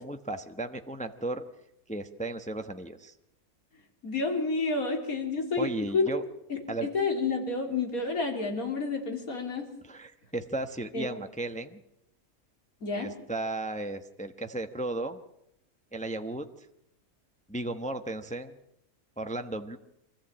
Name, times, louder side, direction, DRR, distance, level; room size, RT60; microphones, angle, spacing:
voice 1, 0.0-1.4 1.9-3.1 5.6-6.2 6.7-6.9 9.8-11.8 12.9-15.2 15.9-16.7 17.5-18.5 19.2-19.8, right 2 dB, 5° left, 7 dB, 0.8 m, -35 dB
voice 2, 4.0-6.1 6.5-9.7 10.9-11.0 12.8-13.1, left 3 dB, 70° left, 3 dB, 3.5 m, -30 dB
24.5 x 14.5 x 8.7 m, 0.83 s
omnidirectional pair, 1.5 m